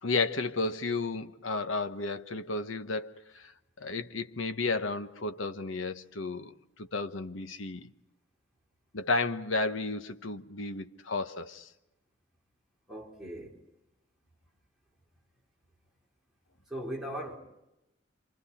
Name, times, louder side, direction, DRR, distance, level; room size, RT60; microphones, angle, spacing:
voice 1, 0.0-3.5 3.8-7.9 8.9-11.7, left 3 dB, 85° left, 1.2 m, -33 dB
voice 2, 12.9-13.6 16.7-17.4, right 1 dB, ahead, 4.2 m, -38 dB
28.5 x 27.0 x 4.3 m
head